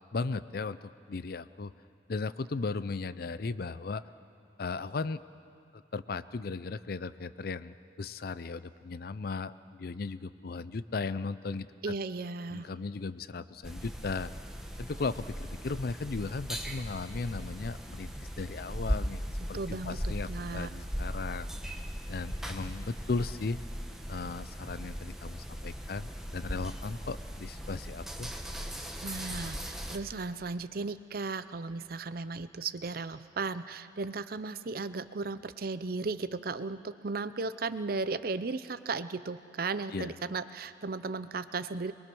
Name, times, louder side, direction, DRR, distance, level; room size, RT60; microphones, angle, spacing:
voice 1, 0.1-1.7 2.1-4.0 4.6-5.2 5.7-12.0 12.5-14.3 14.8-21.5 22.1-23.6 24.1-28.3 39.9-40.1, left 4 dB, 55° left, 15 dB, 0.5 m, -36 dB
voice 2, 11.8-12.7 19.5-20.7 29.0-41.9, right 4 dB, 55° right, 13 dB, 0.6 m, -36 dB
sound 1, 13.6-30.0, equal, 5° right, 1.1 m, -38 dB
23.0 x 22.5 x 6.2 m, 2.5 s
head